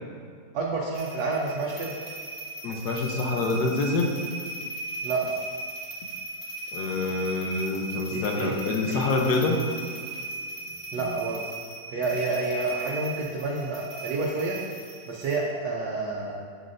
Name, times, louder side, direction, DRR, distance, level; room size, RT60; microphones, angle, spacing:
voice 1, 0.5-1.9 5.0-5.2 8.1-8.5 8.9-9.0 10.7-11.4 11.9-14.5 15.1-16.4, right 3 dB, 70° right, -4 dB, 1.4 m, -29 dB
sound 1, 0.9-15.4, right 2 dB, 15° right, 1.3 m, -38 dB
voice 2, 2.6-4.1 6.7-9.6, left 3 dB, 75° left, 2 dB, 1.4 m, -26 dB
8.7 x 7.5 x 2.6 m, 2.1 s
omnidirectional pair, 1.7 m